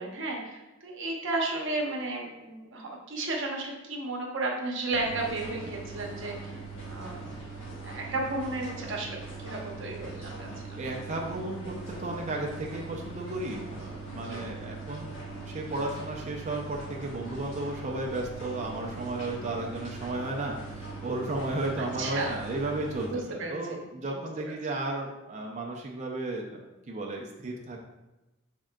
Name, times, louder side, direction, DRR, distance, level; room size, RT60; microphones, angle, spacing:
voice 1, 0.0-6.6 6.9-7.2 7.8-10.5 14.2-14.4 22.0-22.3 23.1-23.5 24.1-24.5, right 2 dB, 65° right, 0 dB, 0.9 m, -33 dB
sound 1, 4.9-23.1, right 3 dB, 65° left, 1.1 m, -41 dB
voice 2, 10.8-15.2 15.5-26.6 26.9-27.8, right 2 dB, 35° right, 0 dB, 0.5 m, -34 dB
6.0 x 3.6 x 2.2 m, 1.0 s
head